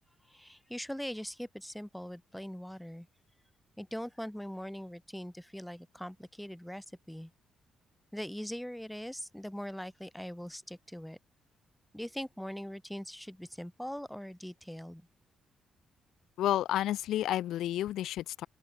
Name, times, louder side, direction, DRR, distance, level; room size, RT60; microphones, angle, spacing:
voice 1, 0.3-3.1 3.8-7.3 8.1-11.2 11.9-15.1, equal, 5° left, 6.0 m, -41 dB
voice 2, 16.4-18.5, left 13 dB, 80° left, 3.0 m, -31 dB
open air
cardioid pair, 85°, 0 cm